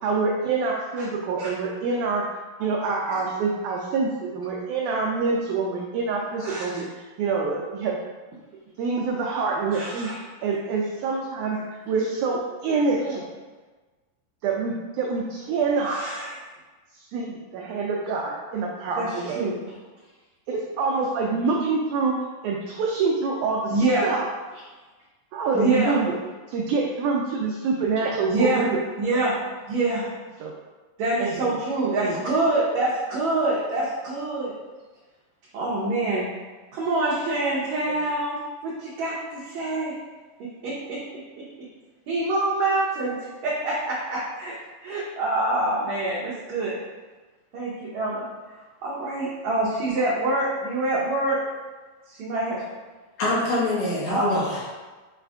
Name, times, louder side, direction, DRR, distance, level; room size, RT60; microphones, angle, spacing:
voice 1, 0.0-2.2 2.6-8.0 8.8-10.1 10.4-13.2 14.4-16.0 16.9-19.5 20.5-22.1 22.4-24.3 25.3-26.2 26.5-28.8 30.4-30.5 31.2-31.6 32.0-32.2 37.9-38.0, right 4 dB, 90° right, -1 dB, 1.7 m, -26 dB
voice 2, 9.7-10.1 13.0-13.2 15.9-16.3 19.0-19.1 19.4-19.6 23.7-24.1 25.5-26.0 28.3-28.6 29.0-29.4 29.7-30.1 31.0-34.5 35.5-36.3 36.7-38.4 38.6-39.9 40.6-41.0 42.1-44.5 44.8-46.8 47.5-48.2 48.8-51.4 52.1-52.6 54.1-54.3, right 2 dB, 70° right, -7 dB, 1.8 m, -25 dB
voice 3, 53.2-54.7, left 1 dB, 70° left, -5 dB, 1.8 m, -24 dB
6.2 x 2.4 x 3.4 m, 1.3 s
omnidirectional pair, 4.0 m